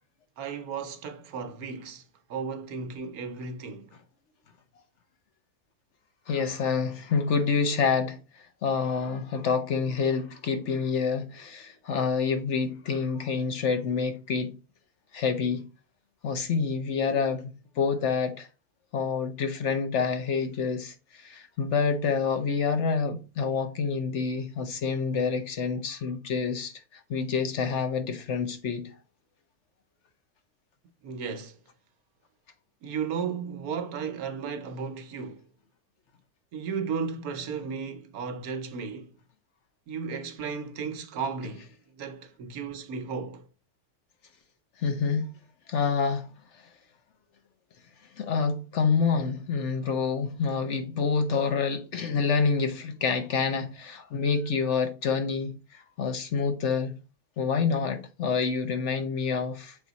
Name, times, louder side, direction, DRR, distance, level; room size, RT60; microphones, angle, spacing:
voice 1, 0.4-2.0 2.3-4.0 31.0-31.6 32.8-35.4 36.5-39.1 39.9-43.5, right 6 dB, 70° right, 1.3 m, -34 dB
voice 2, 6.3-14.6 15.1-15.6 16.2-18.5 18.9-28.9 44.8-45.3 45.7-46.6 48.2-57.0 57.4-59.8, left 5 dB, 55° left, 0.9 m, -27 dB
6.9 x 3.7 x 4.0 m
omnidirectional pair, 1.7 m